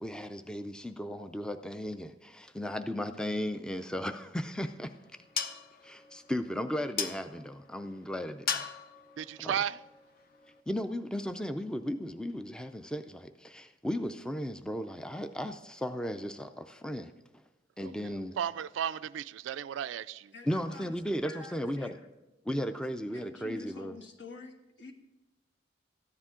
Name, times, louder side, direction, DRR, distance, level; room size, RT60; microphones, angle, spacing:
voice 1, 0.0-5.5 5.8-8.7 9.4-9.5 10.7-17.1 17.8-18.4 20.4-22.0 22.5-24.0, equal, 5° left, 0.4 m, -36 dB
sound 1, 4.2-10.6, left 7 dB, 50° left, 0.7 m, -40 dB
voice 2, 9.2-9.8 17.8-17.9 18.4-20.3, right 9 dB, 75° right, 0.3 m, -34 dB
voice 3, 20.3-21.0 21.2-22.1 22.9-24.9, left 3 dB, 65° left, 1.4 m, -48 dB
13.5 x 9.9 x 3.7 m
head